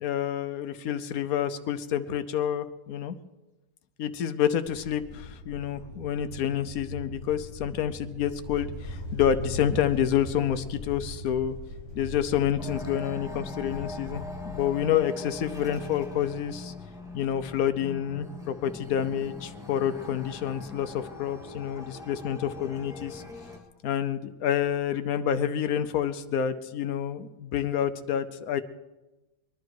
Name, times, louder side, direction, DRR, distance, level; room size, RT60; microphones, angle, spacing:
voice 1, 0.0-3.1 4.0-11.6 11.9-16.7 17.1-23.2 23.8-28.6, left 9 dB, 65° left, 11 dB, 1.2 m, -28 dB
sound 1, 4.7-14.9, left 1 dB, 40° right, 6.7 m, -40 dB
sound 2, 12.6-23.6, left 2 dB, ahead, 2.0 m, -41 dB
22.5 x 11.5 x 4.8 m, 1.1 s
omnidirectional pair, 1.7 m